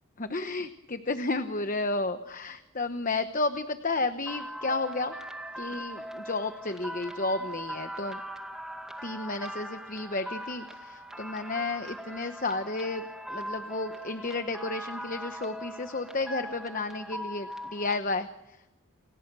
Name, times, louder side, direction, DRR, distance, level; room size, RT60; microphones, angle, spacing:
voice 1, 0.2-5.1 5.6-8.2 9.0-18.7, left 3 dB, 40° left, 9 dB, 1.0 m, -32 dB
sound 1, 4.2-18.0, equal, 5° right, 1.9 m, -40 dB
30.0 x 26.0 x 6.2 m, 0.97 s
head